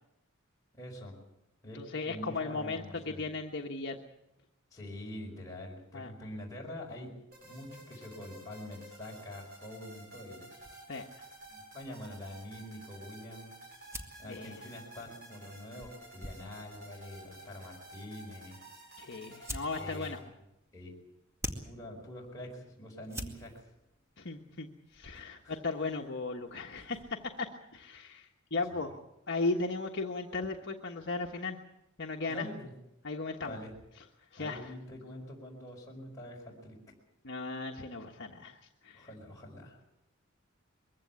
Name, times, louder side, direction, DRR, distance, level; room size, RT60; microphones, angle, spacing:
voice 1, 0.7-1.1 1.6-1.8 2.1-3.2 4.7-7.1 7.4-10.5 11.5-13.5 14.2-18.6 19.8-20.3 20.7-20.9 21.6-23.5 25.4-25.6 28.7-28.9 32.3-32.7 33.4-33.7 34.4-36.8 38.9-39.8, left 1 dB, 15° left, -3 dB, 5.1 m, -45 dB
voice 2, 1.7-4.0 5.9-6.1 10.9-11.1 14.3-14.6 19.0-20.2 24.2-29.0 29.3-31.6 32.0-32.5 33.0-33.6 34.3-34.7 37.2-39.1, left 3 dB, 55° left, 1 dB, 1.4 m, -36 dB
sound 1, 7.3-20.2, right 1 dB, 50° right, 7.6 m, -52 dB
sound 2, 10.6-27.5, equal, 15° right, 2.1 m, -49 dB
22.5 x 16.0 x 8.6 m, 0.89 s
head